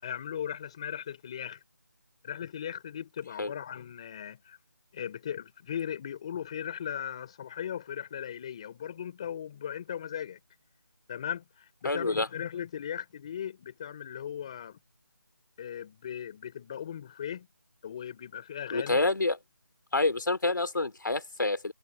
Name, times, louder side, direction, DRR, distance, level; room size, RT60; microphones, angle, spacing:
voice 1, 0.0-1.6 2.2-4.6 4.9-10.4 11.1-14.8 15.6-17.5 17.8-19.0, left 9 dB, 15° left, 4.5 m, -38 dB
voice 2, 11.8-12.3 18.7-19.4 19.9-21.7, left 2 dB, 70° left, 3.2 m, -27 dB
figure-of-eight pair, 175°, 11 cm